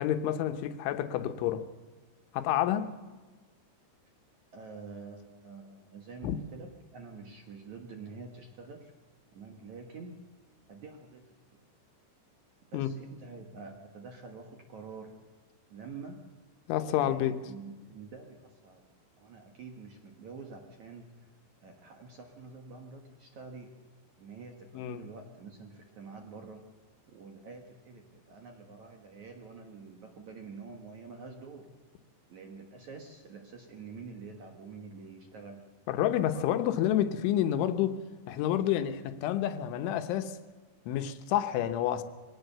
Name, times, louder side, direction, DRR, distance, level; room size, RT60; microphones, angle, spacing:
voice 1, 0.0-1.6 2.3-2.9 6.2-6.4 12.7-12.9 16.7-17.4 24.7-25.1 35.9-40.4 40.9-42.0, left 11 dB, 90° left, 3.5 m, -29 dB
voice 2, 4.5-8.9 9.3-10.2 10.7-11.2 11.5-11.6 12.7-15.2 15.7-16.2 17.0-18.8 19.2-21.1 21.6-23.7 24.2-26.6 27.1-31.7 32.3-35.6 36.3-36.5, right 4 dB, 60° right, 2.1 m, -47 dB
22.5 x 17.5 x 6.8 m
omnidirectional pair, 5.3 m